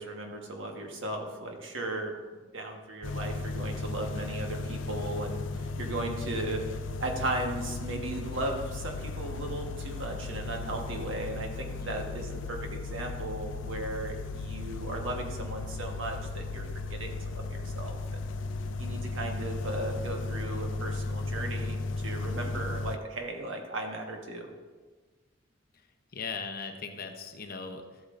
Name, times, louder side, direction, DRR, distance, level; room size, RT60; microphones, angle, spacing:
voice 1, 0.0-6.6 7.0-16.6 16.9-18.0 18.8-21.8 22.0-24.5, right 1 dB, 70° right, 2 dB, 1.3 m, -36 dB
sound 1, 3.0-23.0, left 3 dB, 65° left, 0.5 m, -36 dB
voice 2, 11.8-12.3 26.1-28.0, left 5 dB, 45° left, 5 dB, 0.8 m, -39 dB
13.0 x 8.4 x 2.6 m, 1.4 s
head